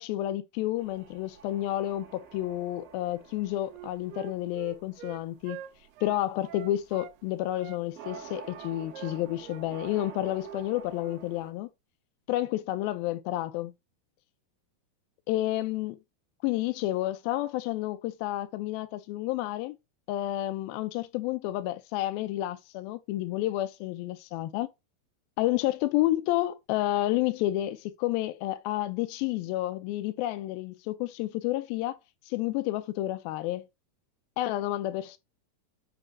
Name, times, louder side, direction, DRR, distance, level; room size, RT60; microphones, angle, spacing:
voice 1, 0.0-5.6 6.0-11.7 12.3-13.7 15.3-16.0 16.4-19.8 20.1-24.7 25.4-32.0 32.3-33.6 34.4-35.2, left 15 dB, 80° left, 2.3 m, -30 dB
sound 1, 0.8-11.5, right 7 dB, 60° right, 1.7 m, -49 dB
Wind instrument woodwind instrument, 3.7-7.1 7.6-9.6 9.9-10.1 10.4-10.7 11.0-11.2, right 11 dB, 85° right, 2.7 m, -45 dB
7.8 x 2.8 x 5.8 m
omnidirectional pair, 4.4 m